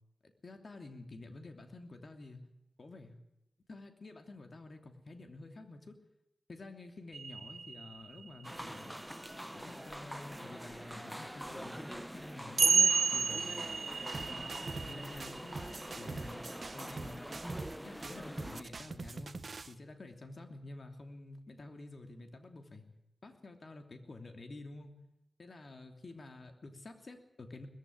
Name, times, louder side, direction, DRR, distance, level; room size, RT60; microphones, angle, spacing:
voice 1, 0.2-2.4 2.8-3.2 3.7-6.0 6.5-9.0 9.5-12.7 13.1-13.6 14.2-14.5 14.7-16.4 16.7-17.3 17.8-19.3 19.7-22.8 23.2-25.0 25.4-27.7, left 2 dB, 55° left, 5 dB, 2.9 m, -49 dB
sound 1, 7.1-8.7 9.9-10.0 11.5-11.6 12.6-16.7 18.2-18.3, right 5 dB, 75° right, 1.5 m, -32 dB
sound 2, 8.4-18.6, equal, 5° right, 0.9 m, -44 dB
sound 3, 14.1-14.9 15.2-17.8 18.0-19.7, right 3 dB, 60° right, 1.0 m, -44 dB
20.0 x 15.0 x 9.5 m, 0.87 s
wide cardioid pair, 80°, 0 cm